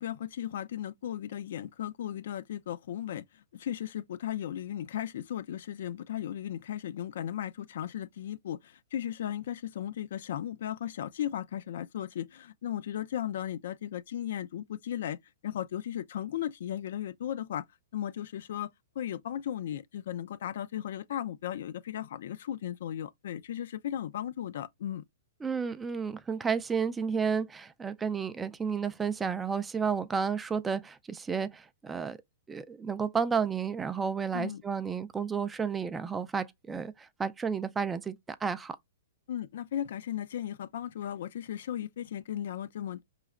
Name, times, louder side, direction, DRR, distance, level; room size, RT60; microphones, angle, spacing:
voice 1, 0.0-15.2 15.4-17.6 17.9-25.0 34.3-34.6 39.3-43.0, left 11 dB, 65° left, 0.4 m, -36 dB
voice 2, 25.4-32.2 32.5-38.8, right 6 dB, 10° right, 0.3 m, -32 dB
4.8 x 3.1 x 2.4 m
hypercardioid pair, 140°, 0 cm